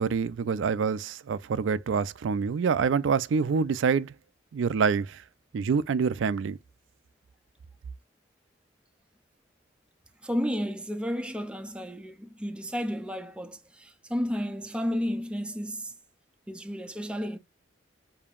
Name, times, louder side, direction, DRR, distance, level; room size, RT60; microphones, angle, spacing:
voice 1, 0.0-4.1 4.5-5.2 5.5-6.6, right 5 dB, 85° right, 0.4 m, -26 dB
voice 2, 10.2-15.9 16.5-17.4, equal, 5° right, 0.5 m, -32 dB
6.9 x 2.8 x 2.3 m
head